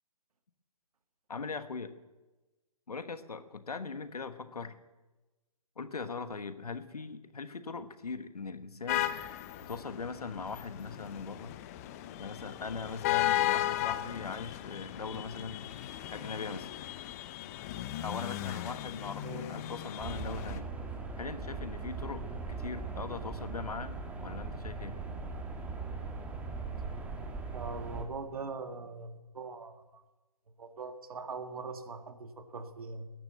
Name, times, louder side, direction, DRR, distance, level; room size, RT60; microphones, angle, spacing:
voice 1, 1.3-1.9 2.9-4.8 5.8-9.1 9.6-11.6 12.2-15.7 16.1-16.7 18.0-20.7 21.2-25.0, left 4 dB, 85° left, 10 dB, 1.4 m, -40 dB
sound 1, 8.9-20.6, left 14 dB, 25° left, 0.6 m, -36 dB
sound 2, 20.0-28.0, right 4 dB, 10° right, 1.4 m, -39 dB
voice 2, 27.5-30.0 30.6-33.1, right 4 dB, 70° right, 7 dB, 1.8 m, -42 dB
15.5 x 11.0 x 7.8 m, 1.1 s
hypercardioid pair, 145°, 19 cm